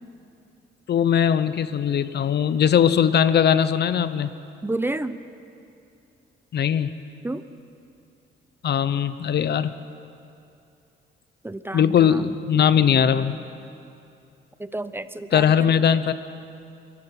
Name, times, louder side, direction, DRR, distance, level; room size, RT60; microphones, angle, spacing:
voice 1, 0.9-4.3 6.5-6.9 8.6-9.7 11.7-13.4 15.3-16.1, left 8 dB, 55° left, 14 dB, 0.8 m, -20 dB
voice 2, 4.6-5.2 7.2-7.4 11.4-12.2 14.6-15.7, right 2 dB, 10° right, 13 dB, 0.7 m, -30 dB
27.5 x 12.0 x 8.2 m, 2.7 s
cardioid pair, 90°, 20 cm